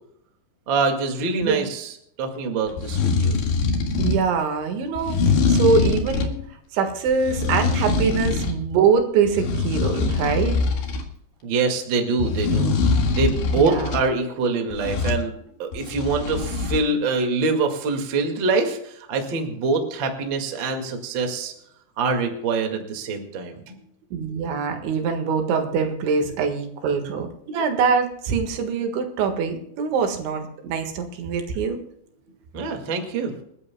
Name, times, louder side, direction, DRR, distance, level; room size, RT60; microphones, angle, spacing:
voice 1, 0.7-3.4 11.4-12.7 13.1-21.5 22.0-23.8 32.5-33.4, right 4 dB, 45° right, 3 dB, 1.6 m, -25 dB
voice 2, 1.4-1.7 4.0-5.2 5.5-6.4 6.7-10.6 13.6-14.0 24.1-31.8, right 5 dB, 80° right, 5 dB, 4.0 m, -23 dB
sound 1, 2.7-4.3 5.0-6.4 7.1-8.6 9.0-11.1 12.2-14.0 14.7-15.2 15.7-16.8, left 4 dB, 70° left, 3.9 m, -23 dB
28.5 x 11.0 x 2.2 m, 0.74 s
omnidirectional pair, 5.3 m